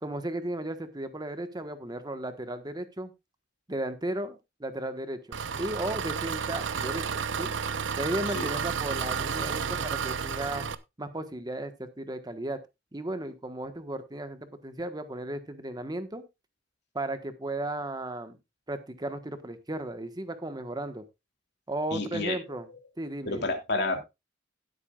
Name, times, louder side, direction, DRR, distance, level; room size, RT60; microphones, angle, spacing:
voice 1, 0.0-3.1 3.7-7.1 7.4-7.5 8.0-10.7 11.0-12.6 12.9-16.2 16.9-18.4 18.7-21.0 21.7-22.7 23.0-23.5, right 1 dB, 20° right, 9 dB, 1.3 m, -35 dB
Engine, 5.3-10.7, right 6 dB, 80° right, 0.8 m, -31 dB
voice 2, 21.9-22.4 23.2-24.0, left 2 dB, 65° left, 4 dB, 3.0 m, -30 dB
17.5 x 8.2 x 2.4 m, 0.23 s
head